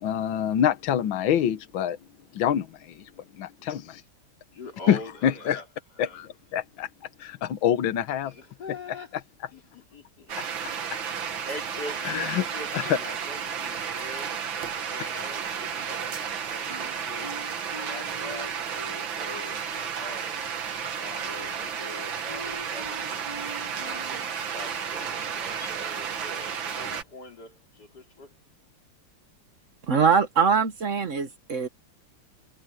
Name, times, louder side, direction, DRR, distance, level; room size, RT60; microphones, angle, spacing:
voice 1, 0.0-2.0 2.3-4.0 4.9-5.6 6.0-6.9 7.2-8.3 12.0-12.4 12.7-13.0, left 9 dB, 80° left, 1.8 m, -26 dB
voice 2, 4.5-5.7 6.0-6.2 8.2-9.2 9.5-10.4 11.1-14.4 14.9-17.4 17.7-20.4 21.0-23.2 23.8-28.3, left 1 dB, 55° left, 4.0 m, -43 dB
sound 1, 10.3-27.0, right 7 dB, 80° right, 2.3 m, -32 dB
Wind instrument woodwind instrument, 16.7-19.6 19.8-24.3, right 1 dB, 15° right, 4.5 m, -43 dB
voice 3, 29.9-31.7, right 6 dB, 45° right, 1.2 m, -22 dB
omnidirectional pair, 2.1 m